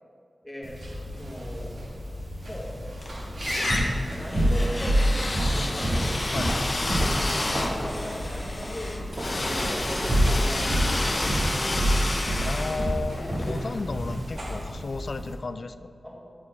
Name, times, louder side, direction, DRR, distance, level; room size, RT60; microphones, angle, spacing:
voice 1, 0.4-0.8 1.2-1.9 2.4-2.7 4.1-6.1 7.4-11.4 16.0-16.1, equal, 5° left, -3 dB, 1.5 m, -39 dB
sound 1, 0.6-15.3, equal, 70° right, 1.4 m, -28 dB
sound 2, 2.5-3.1 3.4-14.3, left 2 dB, 40° left, 0.8 m, -30 dB
Walk footsteps, 5.4-10.9, right 1 dB, 45° right, 1.0 m, -38 dB
voice 2, 12.4-15.9, left 3 dB, 65° left, 12 dB, 0.3 m, -34 dB
11.0 x 4.4 x 4.8 m, 2.5 s
wide cardioid pair, 95°, 0 cm